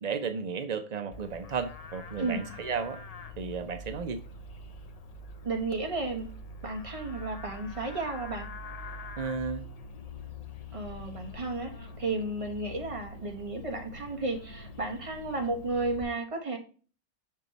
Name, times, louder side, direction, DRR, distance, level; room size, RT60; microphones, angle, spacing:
voice 1, 0.0-3.0 3.4-4.2 9.2-9.6, right 5 dB, 75° right, 8 dB, 0.3 m, -33 dB
Livestock farm animals working animals, 1.1-16.0, left 2 dB, 75° left, 0.3 m, -44 dB
voice 2, 5.4-6.3 6.6-8.5 10.7-16.6, right 3 dB, 25° right, 3 dB, 1.1 m, -33 dB
6.3 x 5.5 x 4.0 m, 0.39 s
omnidirectional pair, 1.5 m